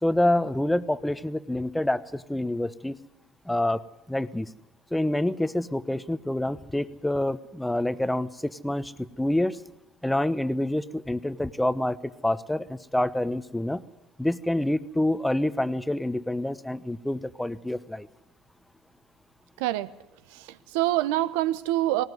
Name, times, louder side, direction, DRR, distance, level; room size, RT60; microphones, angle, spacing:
voice 1, 0.0-3.0 3.4-3.8 4.1-4.5 4.9-9.6 10.0-12.0 12.2-13.8 14.2-18.1, left 1 dB, 5° left, 14 dB, 1.1 m, -27 dB
voice 2, 19.6-19.9 20.3-22.0, right 15 dB, 75° right, 15 dB, 1.0 m, -26 dB
20.0 x 18.0 x 9.7 m, 0.86 s
hypercardioid pair, 80°, 0 cm